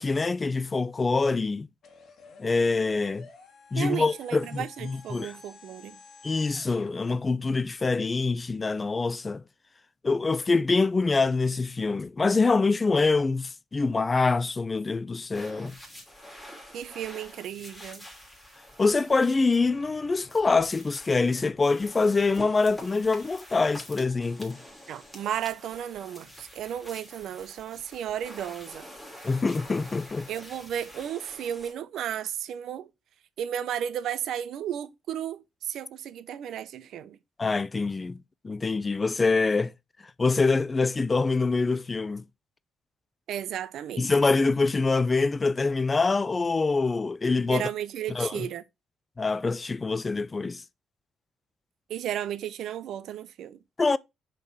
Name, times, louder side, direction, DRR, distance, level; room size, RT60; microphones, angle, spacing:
voice 1, 0.0-1.7 2.4-3.3 3.7-5.3 6.2-9.4 10.0-15.7 18.8-24.6 29.2-30.3 37.4-39.7 40.2-42.2 44.0-47.7 48.1-48.5 49.2-50.6 53.8-54.0, left 3 dB, 30° left, 0.4 m, -25 dB
sound 1, 1.8-6.9, left 4 dB, 55° left, 1.9 m, -51 dB
voice 2, 3.8-6.0 16.7-18.1 24.9-28.9 30.3-32.9 33.4-37.2 43.3-44.1 47.5-48.6 51.9-53.6, right 10 dB, 75° right, 0.7 m, -34 dB
sound 2, 15.3-31.7, equal, 10° left, 2.7 m, -47 dB
5.1 x 4.5 x 4.6 m
cardioid pair, 90°, 0 cm